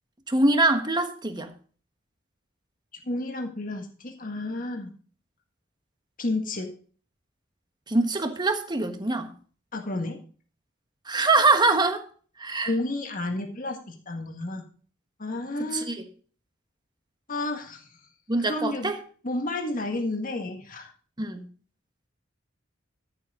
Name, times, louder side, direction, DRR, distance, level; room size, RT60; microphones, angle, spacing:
voice 1, 0.3-1.5 7.9-9.3 11.1-12.0 12.4-12.7 15.6-16.0 18.3-19.0 21.2-21.5, right 2 dB, 20° right, 1.4 m, -24 dB
voice 2, 3.0-4.9 6.2-6.7 9.7-10.2 12.7-14.6 15.2-15.8 17.3-17.9 18.4-18.9 19.2-20.9, left 2 dB, 45° left, 1.7 m, -31 dB
13.5 x 7.4 x 3.8 m
head